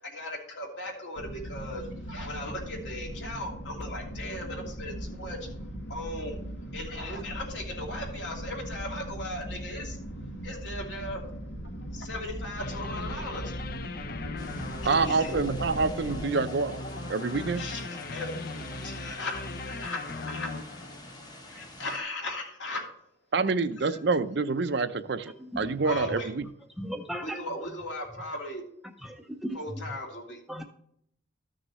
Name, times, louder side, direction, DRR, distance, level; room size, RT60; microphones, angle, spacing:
voice 1, 0.0-5.6 5.9-6.4 6.7-10.1 10.4-11.4 11.9-13.5 14.8-15.4 17.6-17.8 18.1-18.3 18.8-20.5 21.5-22.9 25.8-26.3 27.2-28.6 29.5-30.4, left 1 dB, 65° left, 0 dB, 2.8 m, -37 dB
sound 1, 1.2-16.2, equal, 85° left, 1.9 m, -39 dB
sound 2, 12.6-21.6, left 2 dB, 45° left, 0.6 m, -38 dB
sound 3, 14.4-22.0, left 1 dB, 20° left, 1.0 m, -46 dB
voice 2, 14.8-16.8 17.1-17.7 23.3-26.5, right 4 dB, 55° right, 11 dB, 0.5 m, -27 dB
voice 3, 25.3-25.7 26.8-27.4 29.0-29.8 30.5-30.6, equal, ahead, 4 dB, 0.6 m, -37 dB
14.0 x 6.3 x 3.1 m, 0.70 s
head